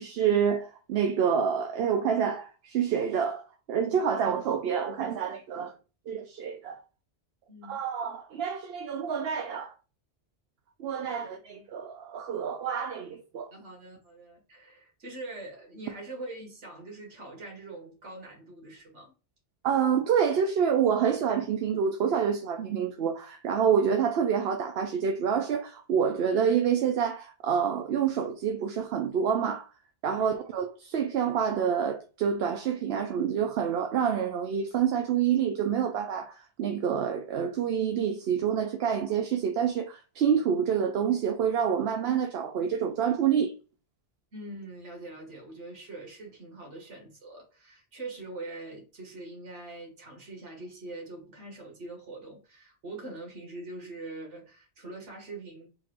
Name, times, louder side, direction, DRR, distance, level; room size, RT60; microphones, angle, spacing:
voice 1, 0.0-5.7 6.1-6.8 7.7-9.7 10.8-13.5 19.6-29.7 30.0-43.5, right 7 dB, 65° right, 0.8 m, -27 dB
voice 2, 7.5-7.8 11.4-11.7 13.5-19.1 30.2-30.4 44.3-55.7, right 2 dB, 85° right, 1.8 m, -43 dB
3.9 x 2.5 x 4.4 m
omnidirectional pair, 1.2 m